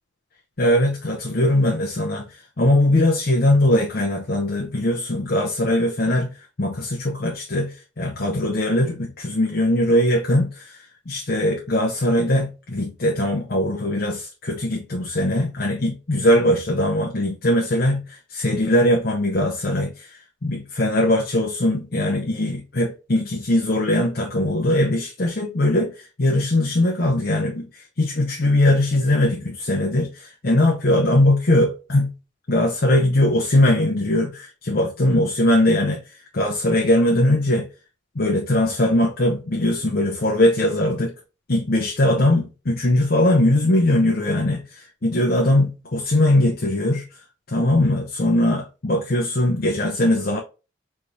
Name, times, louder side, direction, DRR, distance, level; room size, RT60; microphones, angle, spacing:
voice 1, 0.6-2.3 2.6-6.3 6.6-10.8 11.1-32.1 32.5-36.0 36.3-37.7 38.1-41.1 41.5-47.1 47.5-50.4, left 1 dB, 50° left, 0.8 m, -20 dB
4.9 x 3.3 x 2.8 m
head